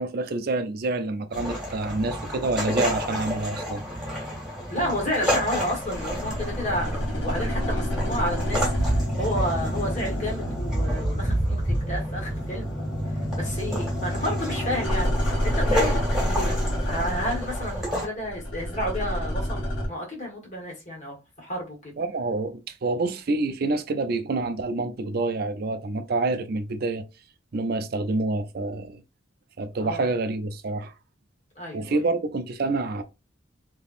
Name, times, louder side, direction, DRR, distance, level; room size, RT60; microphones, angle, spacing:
voice 1, 0.0-3.8 22.0-27.1 27.5-29.0 29.6-30.9 31.7-33.0, right 3 dB, 50° right, 0.4 m, -27 dB
sound 1, 1.3-18.1, equal, 5° right, 1.6 m, -30 dB
voice 2, 4.7-12.7 13.3-15.1 15.4-16.6 16.9-21.9 29.8-30.1 31.6-32.0, equal, 40° left, 1.5 m, -31 dB
sound 2, 5.8-11.7 12.0-19.9, equal, 90° left, 1.3 m, -29 dB
3.4 x 2.9 x 2.5 m
head